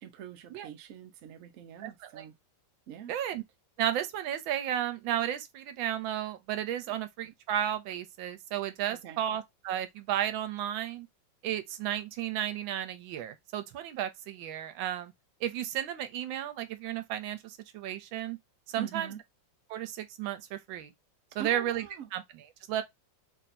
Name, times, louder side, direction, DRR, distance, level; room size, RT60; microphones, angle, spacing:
voice 1, 0.0-2.4 2.9-3.1 6.9-7.0 8.9-9.2 18.8-19.2 21.4-22.1, right 9 dB, 65° right, 0.8 m, -43 dB
voice 2, 1.8-2.2 3.1-3.4 3.8-11.1 11.4-15.1 15.4-18.4 18.7-19.1 19.7-20.9 21.3-21.8 22.1-22.2 22.7-22.8, right 11 dB, 85° right, 1.4 m, -33 dB
3.3 x 2.6 x 4.1 m
omnidirectional pair, 2.1 m